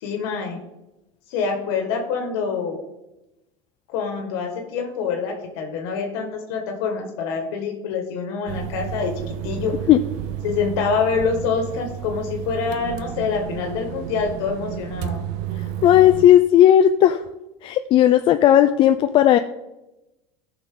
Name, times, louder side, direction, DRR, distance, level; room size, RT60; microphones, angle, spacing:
voice 1, 0.0-0.6 1.3-2.8 3.9-9.7 10.4-15.2, left 5 dB, 75° left, 3 dB, 1.8 m, -26 dB
sound 1, 8.5-16.3, right 11 dB, 60° right, 0.8 m, -32 dB
voice 2, 15.8-17.2 17.6-19.4, left 11 dB, 35° left, 9 dB, 0.4 m, -14 dB
14.5 x 6.0 x 3.8 m, 0.96 s
supercardioid pair, 140°, 14 cm